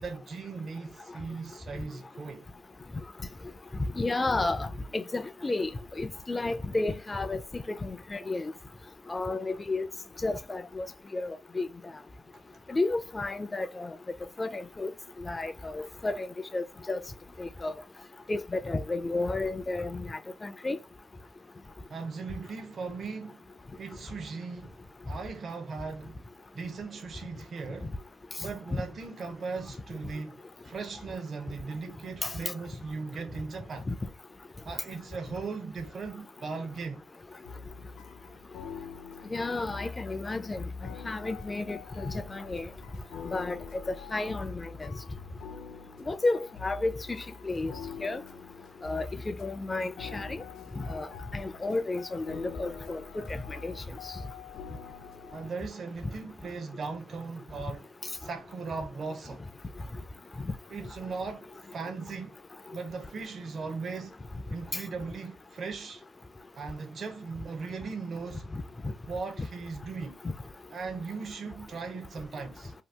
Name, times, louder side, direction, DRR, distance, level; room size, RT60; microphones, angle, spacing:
voice 1, 0.0-2.4 21.9-23.4 23.8-24.8 25.0-26.2 26.5-27.9 28.4-33.9 34.6-37.0 55.3-57.9 58.2-59.4 60.7-62.4 62.7-64.2 64.5-66.0 66.5-68.5 69.1-70.2 70.7-72.7, right 4 dB, 50° right, 0.5 m, -38 dB
voice 2, 4.0-5.7 6.0-8.5 9.1-9.9 10.2-10.9 11.1-11.7 12.7-14.0 14.4-14.9 15.3-17.0 17.4-17.7 18.3-20.8 28.7-28.8 32.2-32.3 33.9-34.0 39.3-40.6 41.0-42.7 43.3-43.6 43.9-44.9 46.1-46.9 47.4-47.7 48.0-48.2 48.8-50.4 50.8-51.1 51.3-53.0 53.3-53.7, left 2 dB, 20° left, 0.3 m, -32 dB
sound 1, 37.5-55.5, left 5 dB, 85° left, 0.5 m, -45 dB
2.8 x 2.2 x 3.3 m
cardioid pair, 90°, 0 cm